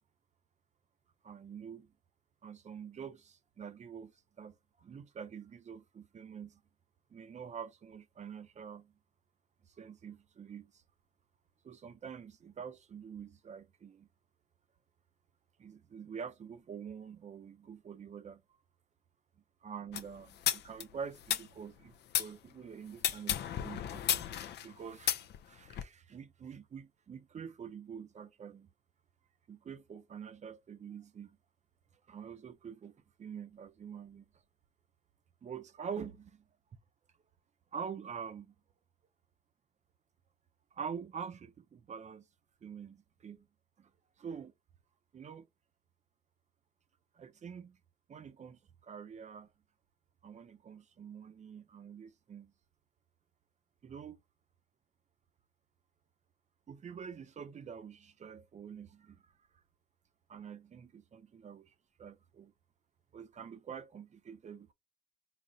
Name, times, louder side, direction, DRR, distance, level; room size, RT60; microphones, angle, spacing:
voice 1, 1.2-1.9 2.4-4.1 4.4-6.6 7.1-8.9 9.8-10.7 11.6-14.1 15.6-18.4 19.6-24.0 24.6-25.2 25.5-28.7 29.5-31.4 32.1-32.9 33.2-34.3 35.4-36.4 37.7-38.5 40.7-42.2 42.6-43.5 43.8-43.9 44.2-44.5 45.1-45.5 47.2-47.8 48.1-49.5 50.2-52.5 53.8-54.2 56.7-59.2 60.3-61.7 62.0-62.5 63.1-64.7, right 7 dB, 45° right, 0.5 m, -46 dB
sound 1, 19.9-22.3 23.0-25.8, left 10 dB, 90° left, 0.4 m, -34 dB
4.0 x 2.0 x 3.6 m
cardioid pair, 95°, 17 cm